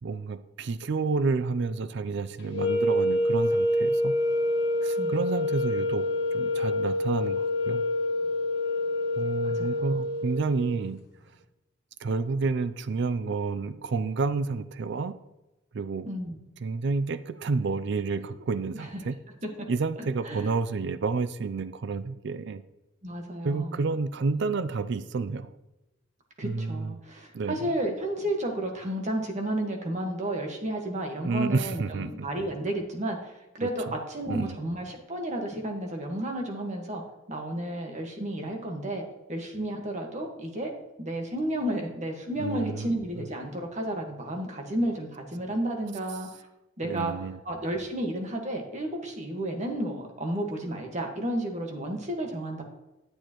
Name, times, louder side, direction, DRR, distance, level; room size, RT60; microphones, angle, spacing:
voice 1, 0.0-4.1 4.8-7.8 9.2-11.0 12.0-15.2 15.7-16.1 16.6-19.1 19.7-22.6 23.4-25.5 26.4-27.0 27.3-27.6 31.2-32.3 33.6-33.9 34.3-34.6 42.4-43.2 46.8-47.4, right 4 dB, 60° right, 13 dB, 0.4 m, -30 dB
sound 1, 2.5-10.7, left 1 dB, 60° left, 1.2 m, -27 dB
voice 2, 9.4-9.9 16.0-16.4 20.2-20.4 23.0-23.8 26.4-33.3 33.6-37.0 37.3-39.0 39.3-40.7 41.0-46.3 46.8-47.1 47.4-52.6, right 1 dB, 35° right, 2 dB, 1.5 m, -32 dB
10.0 x 8.5 x 3.0 m, 0.98 s
head